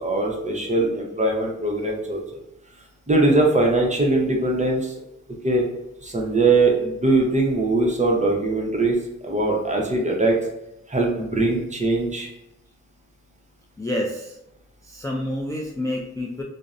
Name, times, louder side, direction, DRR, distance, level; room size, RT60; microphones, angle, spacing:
voice 1, 0.0-2.2 3.1-4.9 5.4-5.6 6.0-9.0 9.2-10.4 10.9-12.3, right 2 dB, 25° right, -1 dB, 0.6 m, -21 dB
voice 2, 13.8-14.4 14.8-16.4, left 1 dB, 10° left, -2 dB, 0.3 m, -28 dB
2.5 x 2.0 x 2.4 m, 0.87 s
cardioid pair, 55°, 31 cm